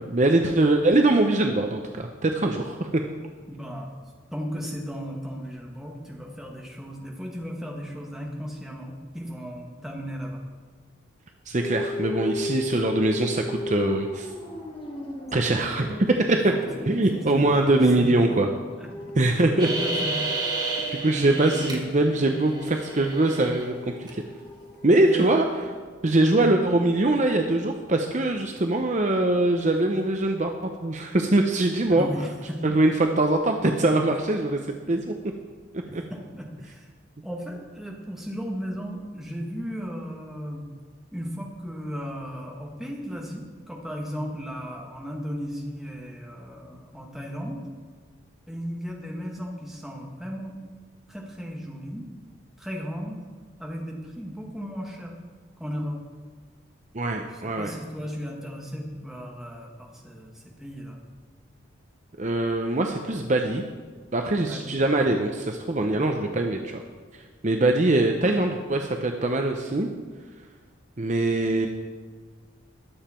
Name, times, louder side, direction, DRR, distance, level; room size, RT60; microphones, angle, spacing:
voice 1, 0.0-2.9 11.5-14.3 15.3-15.9 16.9-18.5 19.2-19.7 20.9-24.2 24.8-25.7 26.0-32.1 32.6-34.6 34.9-35.1 35.9-36.0 56.9-57.7 62.2-63.6 64.1-66.8 67.1-69.9 71.0-71.7, right 2 dB, 35° right, 4 dB, 0.7 m, -23 dB
voice 2, 3.5-3.9 4.3-10.4 16.5-18.4 18.8-20.3 25.0-25.3 31.9-32.8 35.9-36.9 37.2-40.7 41.1-47.6 48.5-50.6 51.1-52.0 52.6-53.2 53.6-55.1 55.6-56.0 57.3-61.0 64.4-64.7, equal, ahead, -2 dB, 1.8 m, -35 dB
sound 1, 11.5-25.8, left 1 dB, 25° left, 1.4 m, -37 dB
sound 2, 19.6-21.7 22.1-23.6 24.1-24.2, right 2 dB, 20° right, 1.6 m, -31 dB
21.5 x 7.3 x 4.4 m, 1.5 s
head